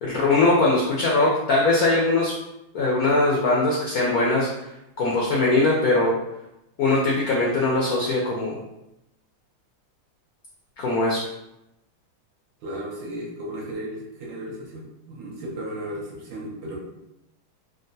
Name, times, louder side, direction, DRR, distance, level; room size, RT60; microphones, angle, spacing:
voice 1, 0.0-2.3 2.7-4.5 5.0-6.2 6.8-8.6 10.8-11.3, left 2 dB, 80° left, -4 dB, 0.8 m, -21 dB
voice 2, 12.6-16.8, right 1 dB, 70° right, -5 dB, 1.5 m, -35 dB
3.6 x 2.2 x 2.6 m, 0.90 s
omnidirectional pair, 2.2 m